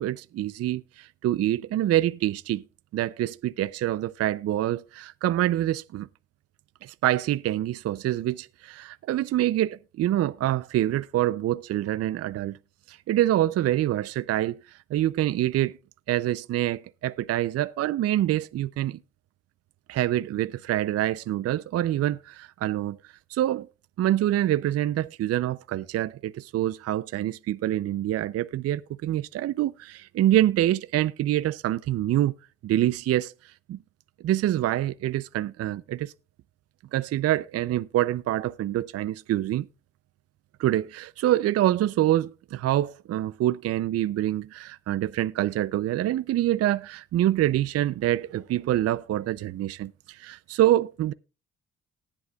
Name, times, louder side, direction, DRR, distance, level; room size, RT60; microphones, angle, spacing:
voice 1, 0.0-2.6 2.9-6.1 6.8-12.6 12.9-15.8 16.1-19.0 19.9-23.7 24.0-32.4 32.6-33.8 34.2-36.1 36.9-39.7 40.6-51.1, right 13 dB, 55° right, 0.4 m, -26 dB
19.0 x 7.7 x 2.3 m
cardioid pair, 90°, 30 cm